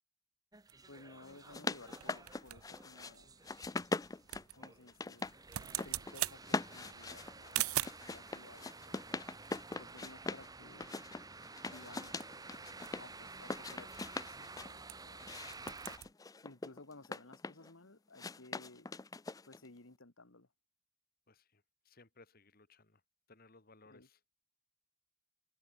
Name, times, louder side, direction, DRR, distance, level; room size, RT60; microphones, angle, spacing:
sound 1, 0.5-16.0, right 3 dB, 15° right, 2.0 m, -52 dB
sound 2, 0.7-8.1 8.9-10.6 10.8-10.9 11.2-11.5 11.9-15.2 15.5-16.1, right 14 dB, 85° right, 0.7 m, -44 dB
voice 1, 0.9-3.3 4.5-5.3 5.8-9.0 9.7-11.0 11.7-12.2 12.9-15.3 16.4-18.9 19.5-20.5 23.9-24.1, left 2 dB, 65° left, 2.0 m, -57 dB
sound 3, 1.3-3.1 3.4-5.3 5.6-6.1 6.4-10.5 10.8-13.0 13.4-14.7 15.2-17.7 18.1-19.7, left 3 dB, 15° left, 0.4 m, -42 dB
voice 2, 21.3-23.0 23.3-24.2, left 3 dB, 45° left, 1.7 m, -62 dB
head